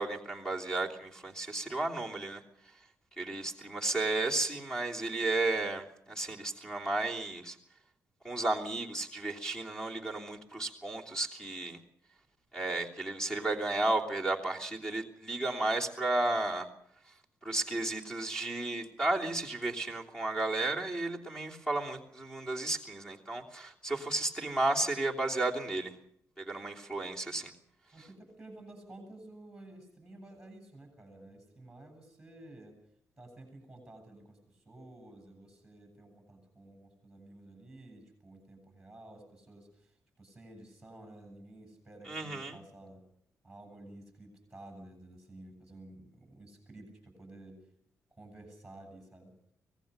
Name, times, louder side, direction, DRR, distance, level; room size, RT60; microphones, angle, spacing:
voice 1, 0.0-2.4 3.2-7.6 8.2-11.8 12.5-16.7 17.4-25.9 26.4-27.5 42.1-42.6, right 2 dB, 15° left, 2 dB, 3.0 m, -33 dB
voice 2, 27.9-32.8 33.2-43.0 43.4-47.6 48.1-49.3, right 1 dB, 5° right, 5 dB, 7.9 m, -52 dB
25.0 x 19.0 x 6.7 m, 0.69 s
wide cardioid pair, 170°, 6 cm